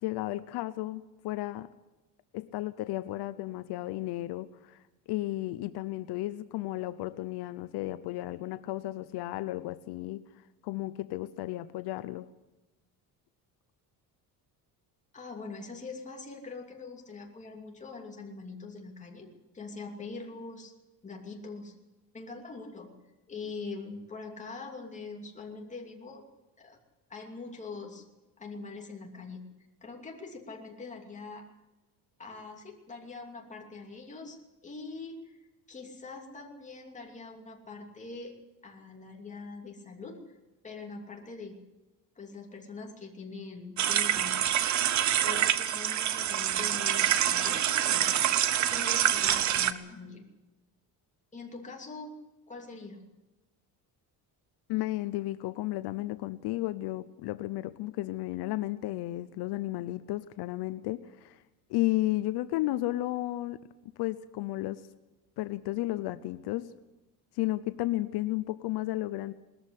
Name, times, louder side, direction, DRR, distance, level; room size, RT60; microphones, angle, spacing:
voice 1, 0.0-1.7 2.3-4.8 5.1-10.3 10.6-12.3 54.7-61.4 61.7-64.9 65.4-66.7 67.3-69.3, left 16 dB, 80° left, 14 dB, 0.8 m, -33 dB
voice 2, 15.1-20.7 21.0-21.8 22.1-22.9 23.3-26.2 26.6-26.8 27.1-28.0 28.4-29.5 29.8-31.4 32.2-35.4 35.7-38.4 38.6-40.4 40.6-41.6 42.2-44.5 45.2-48.3 48.6-50.3 51.3-52.2 52.5-53.0, left 3 dB, 20° left, 1 dB, 2.8 m, -43 dB
sound 1, 43.8-49.7, right 11 dB, 45° right, 0.9 m, -26 dB
20.0 x 14.0 x 9.8 m, 1.1 s
cardioid pair, 170°, 39 cm